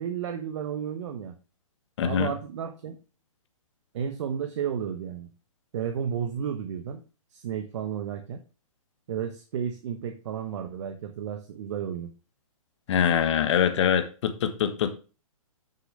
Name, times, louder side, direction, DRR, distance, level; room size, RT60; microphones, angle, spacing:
voice 1, 0.0-1.3 2.0-3.0 3.9-5.3 5.7-7.0 7.3-8.4 9.1-12.1, right 8 dB, 55° right, 6 dB, 1.2 m, -32 dB
voice 2, 2.0-2.3 12.9-15.0, left 8 dB, 55° left, 8 dB, 1.4 m, -24 dB
9.3 x 6.7 x 3.3 m, 0.34 s
hypercardioid pair, 135°, 18 cm